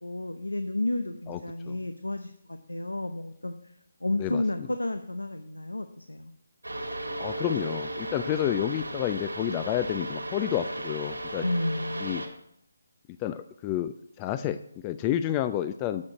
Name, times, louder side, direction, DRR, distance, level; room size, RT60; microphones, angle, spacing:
voice 1, 0.0-3.6 4.0-6.3 11.4-12.3, left 2 dB, 90° left, 8 dB, 0.7 m, -31 dB
sound 1, 6.6-12.3, right 1 dB, 85° right, 2.2 m, -35 dB
voice 2, 7.2-11.4 12.0-12.2 13.2-16.0, left 11 dB, 20° left, 11 dB, 0.3 m, -30 dB
8.6 x 6.3 x 6.3 m, 0.75 s
figure-of-eight pair, 155°, 0 cm